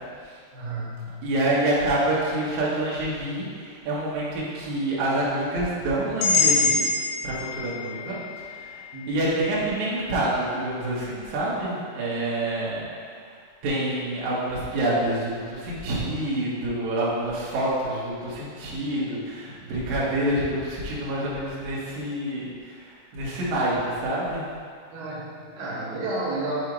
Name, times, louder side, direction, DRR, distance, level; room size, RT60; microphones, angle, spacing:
voice 1, 0.5-1.3 8.9-9.3 24.9-26.7, right 2 dB, 75° right, -5 dB, 2.4 m, -31 dB
voice 2, 1.2-6.8 7.2-12.8 13.2-13.3 13.6-24.5, right 1 dB, 90° right, -8 dB, 1.6 m, -27 dB
sound 1, 6.2-10.2, left 4 dB, 90° left, 3.2 m, -26 dB
8.0 x 3.0 x 4.7 m, 2.1 s
omnidirectional pair, 5.5 m